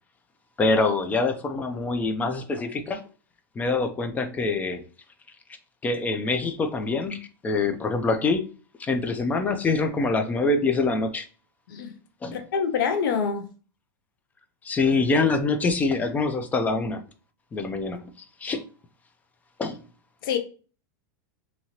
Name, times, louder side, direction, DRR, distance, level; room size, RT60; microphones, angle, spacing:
voice 1, 0.6-3.0 3.6-4.8 5.8-8.5 8.8-11.3 12.2-12.4 14.6-17.0 17.5-18.1 18.4-18.6 19.6-19.8, left 3 dB, 15° left, 0.3 m, -25 dB
voice 2, 12.3-13.5 20.2-20.4, left 6 dB, 75° left, 0.6 m, -26 dB
2.8 x 2.7 x 2.8 m
supercardioid pair, 140°, 11 cm